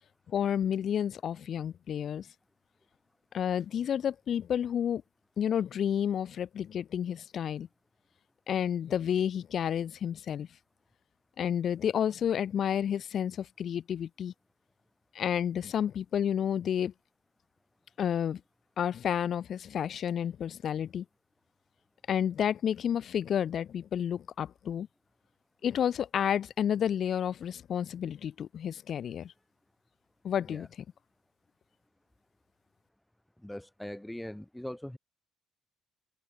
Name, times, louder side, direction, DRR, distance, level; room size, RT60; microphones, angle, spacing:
voice 1, 0.3-2.3 3.3-5.0 5.4-7.7 8.5-10.5 11.4-14.3 15.1-16.9 18.0-18.4 18.8-21.0 22.1-24.9 25.6-29.3 30.2-30.7, left 9 dB, 45° left, 2.6 m, -30 dB
voice 2, 33.4-35.0, left 1 dB, 5° left, 3.8 m, -41 dB
open air
cardioid pair, 150°, 0 cm